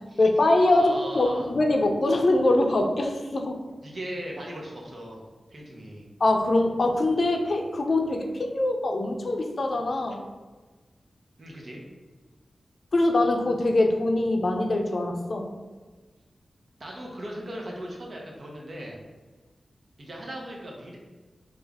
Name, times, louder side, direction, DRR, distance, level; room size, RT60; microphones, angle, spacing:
voice 1, 0.2-3.6 6.2-10.2 12.9-15.5, left 2 dB, 60° left, 3 dB, 0.4 m, -23 dB
voice 2, 0.7-1.5 3.8-5.2 5.5-6.0 11.4-11.8 16.8-19.0 20.0-21.0, right 1 dB, 60° right, -1 dB, 0.8 m, -38 dB
3.3 x 2.4 x 3.4 m, 1.3 s
cardioid pair, 55°, 0 cm